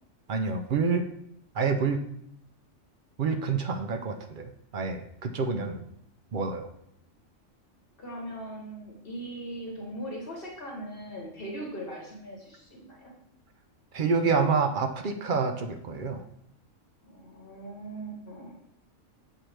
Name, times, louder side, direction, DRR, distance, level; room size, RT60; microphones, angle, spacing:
voice 1, 0.3-1.0 1.5-2.0 3.2-5.8 6.3-6.6 13.9-16.2, right 5 dB, 55° right, 6 dB, 0.6 m, -27 dB
voice 2, 8.0-13.1 17.0-18.5, right 1 dB, 45° left, -1 dB, 1.2 m, -40 dB
7.4 x 4.5 x 3.3 m, 0.73 s
omnidirectional pair, 1.4 m